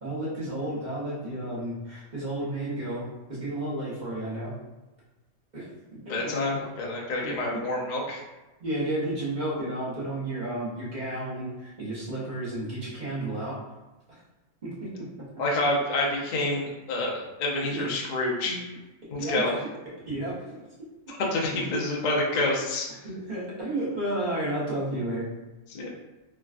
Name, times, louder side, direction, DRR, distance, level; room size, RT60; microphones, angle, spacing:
voice 1, 0.0-4.5 5.5-6.3 7.2-7.7 8.6-13.6 14.1-14.2 14.6-15.1 17.7-17.9 18.4-18.6 19.2-19.4 20.1-20.7 21.5-21.7 23.0-25.3, right 1 dB, 35° right, -8 dB, 0.9 m, -32 dB
voice 2, 6.1-8.2 15.4-18.6 19.1-19.6 21.1-22.9 25.7-25.9, left 2 dB, 75° left, -2 dB, 0.4 m, -28 dB
3.4 x 2.3 x 2.4 m, 1.1 s
omnidirectional pair, 1.6 m